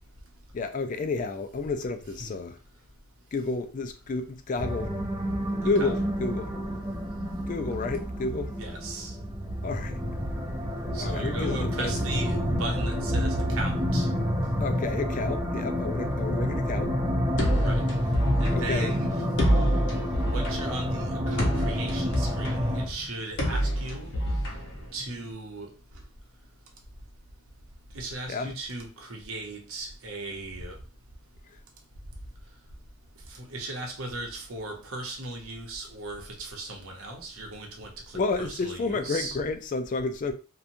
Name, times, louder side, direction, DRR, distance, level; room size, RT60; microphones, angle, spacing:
voice 1, 0.5-2.6 3.3-4.9 5.6-6.5 7.5-8.5 9.6-10.0 11.0-11.9 14.6-16.9 18.5-18.9 28.3-28.5 38.1-40.3, left 3 dB, 35° left, 0.3 m, -30 dB
sound 1, 4.6-22.9, equal, 15° right, 0.6 m, -29 dB
voice 2, 8.6-9.1 10.9-14.1 17.6-17.8 18.4-19.2 20.2-24.1 24.9-25.7 27.9-30.8 33.4-39.4, right 2 dB, 70° right, 0.8 m, -37 dB
sound 2, 17.4-25.3, equal, 55° left, 0.7 m, -28 dB
2.8 x 2.2 x 2.5 m
head